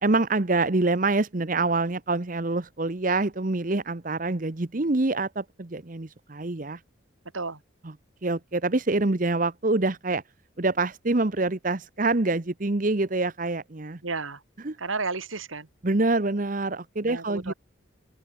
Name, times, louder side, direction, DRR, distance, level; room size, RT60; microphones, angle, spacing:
voice 1, 0.0-6.8 8.2-10.2 10.6-14.0 14.6-14.7 15.8-17.5, right 2 dB, 40° right, 0.9 m, -26 dB
voice 2, 14.0-14.4 14.8-15.7 17.0-17.5, right 4 dB, 85° right, 3.1 m, -32 dB
open air
head